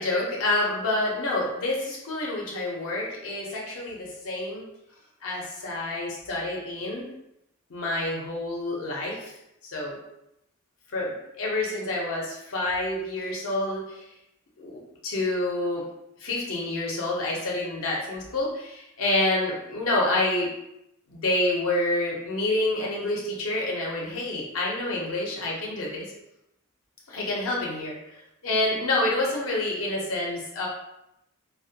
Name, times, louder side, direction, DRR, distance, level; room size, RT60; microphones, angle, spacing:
voice 1, 0.0-4.7 5.2-7.1 7.7-9.3 9.6-10.0 10.9-14.1 14.6-15.9 16.2-20.5 21.1-26.1 27.1-28.2 28.4-30.7, left 2 dB, 70° left, -3 dB, 0.5 m, -28 dB
2.2 x 2.1 x 2.7 m, 0.84 s
head